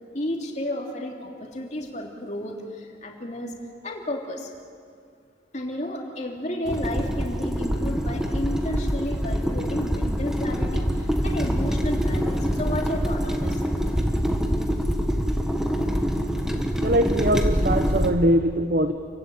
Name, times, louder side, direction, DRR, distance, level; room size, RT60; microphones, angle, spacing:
voice 1, 0.1-3.5 3.8-4.5 5.5-13.6, left 1 dB, 40° left, 1 dB, 3.0 m, -32 dB
sound 1, 6.7-18.1, equal, 5° right, 1.7 m, -25 dB
voice 2, 16.5-18.9, right 1 dB, 50° right, 8 dB, 0.9 m, -22 dB
29.0 x 15.5 x 9.2 m, 2.3 s
head